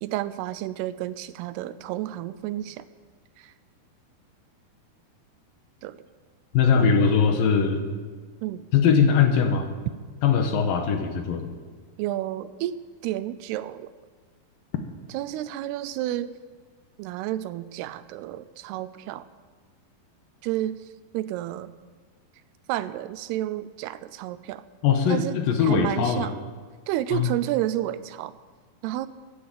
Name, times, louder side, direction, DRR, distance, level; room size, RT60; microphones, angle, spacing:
voice 1, 0.0-2.9 3.4-3.5 5.8-6.0 6.8-7.1 8.4-8.7 12.0-12.8 13.0-13.9 15.1-16.3 17.0-19.3 20.4-20.7 21.1-21.7 22.7-24.6 25.1-26.4 26.9-28.4 28.8-29.1, right 13 dB, 85° right, 15 dB, 2.6 m, -31 dB
voice 2, 6.5-7.8 8.7-9.7 10.2-11.5 24.8-26.3 27.1-27.3, left 6 dB, 70° left, 6 dB, 2.7 m, -21 dB
15.5 x 10.5 x 7.5 m, 1.5 s
omnidirectional pair, 4.6 m